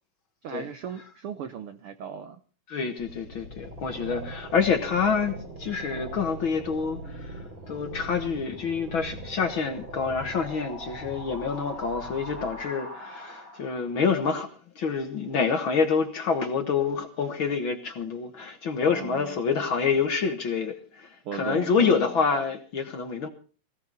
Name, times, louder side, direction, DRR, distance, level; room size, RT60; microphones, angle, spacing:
voice 1, 0.4-2.4 18.9-19.4 21.2-22.0, right 8 dB, 75° right, 1.3 m, -37 dB
voice 2, 2.7-14.5 14.8-23.3, left 5 dB, 50° left, 1.6 m, -27 dB
sound 1, 3.0-13.9, right 1 dB, 50° right, 6.0 m, -40 dB
18.5 x 16.0 x 4.0 m
omnidirectional pair, 3.6 m